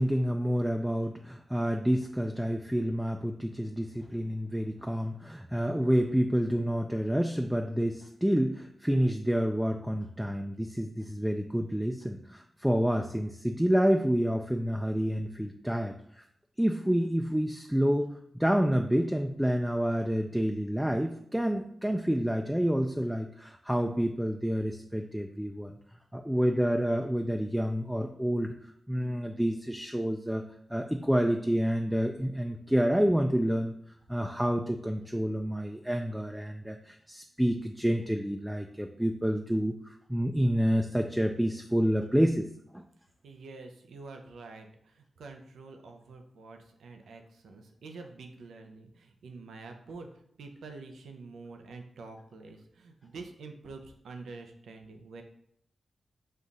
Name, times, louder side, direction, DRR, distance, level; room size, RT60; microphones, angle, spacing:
voice 1, 0.0-16.2 16.6-18.1 18.4-25.7 26.1-28.5 28.9-30.4 30.7-33.7 34.1-42.5 42.7-42.8, equal, 5° right, 4 dB, 0.4 m, -28 dB
voice 2, 43.2-50.1 50.4-55.2, right 3 dB, 85° right, 4 dB, 0.6 m, -47 dB
5.5 x 2.4 x 4.0 m, 0.70 s
cardioid pair, 50°, 0 cm